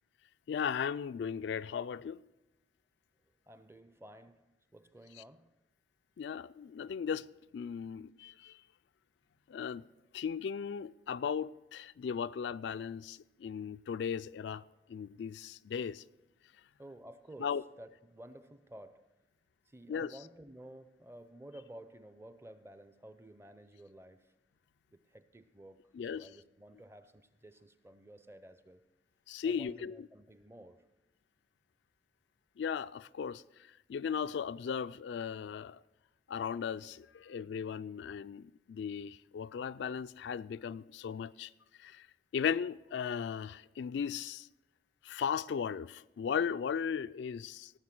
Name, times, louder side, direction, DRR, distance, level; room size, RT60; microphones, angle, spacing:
voice 1, 0.5-2.2 6.2-7.3 7.5-8.6 9.5-9.9 10.1-14.6 14.9-16.0 17.4-17.6 19.9-20.1 25.9-26.3 29.3-30.1 32.6-35.8 36.3-41.5 41.8-42.1 42.3-44.5 45.0-47.7, left 7 dB, 65° left, 0.3 m, -37 dB
voice 2, 3.5-5.5 16.8-19.1 19.7-24.3 24.9-28.8 29.4-30.9, right 1 dB, 15° right, 0.5 m, -53 dB
17.5 x 7.2 x 6.0 m
head